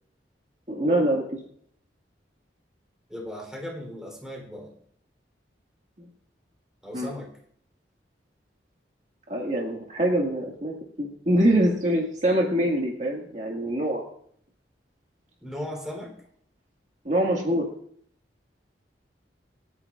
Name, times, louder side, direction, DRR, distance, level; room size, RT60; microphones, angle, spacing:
voice 1, 0.7-1.2 6.0-6.1 6.9-7.1 9.3-14.0 17.0-17.7, right 1 dB, 40° right, -1 dB, 1.9 m, -24 dB
voice 2, 3.1-4.7 6.8-7.3 15.4-16.2, equal, 5° right, -1 dB, 3.6 m, -37 dB
26.5 x 9.8 x 2.5 m, 0.65 s
head